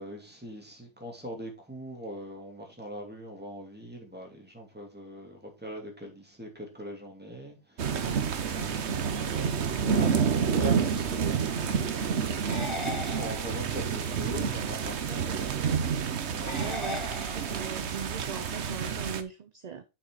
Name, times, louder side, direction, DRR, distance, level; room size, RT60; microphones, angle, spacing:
voice 1, 0.0-12.1 13.0-15.8 16.3-16.6, right 1 dB, 10° right, 2.7 m, -41 dB
sound 1, 7.8-19.2, right 6 dB, 75° right, 1.2 m, -29 dB
sound 2, 12.4-13.9 16.4-17.9, left 3 dB, 25° left, 1.1 m, -38 dB
voice 2, 16.6-19.8, right 7 dB, 45° right, 0.6 m, -40 dB
6.7 x 6.1 x 4.8 m
omnidirectional pair, 1.2 m